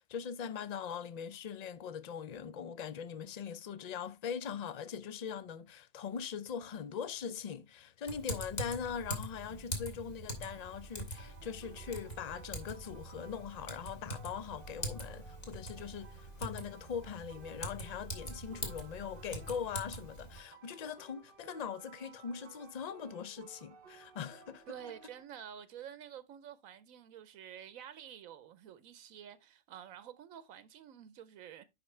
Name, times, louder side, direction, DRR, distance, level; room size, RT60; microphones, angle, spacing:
voice 1, 0.0-24.6, left 7 dB, 60° left, 0.4 m, -41 dB
Typing, 8.1-20.4, equal, 30° left, 1.7 m, -43 dB
sound 1, 10.3-25.2, right 6 dB, 50° right, 0.8 m, -58 dB
voice 2, 24.7-31.6, right 9 dB, 90° right, 1.1 m, -49 dB
10.0 x 4.4 x 3.2 m
omnidirectional pair, 1.4 m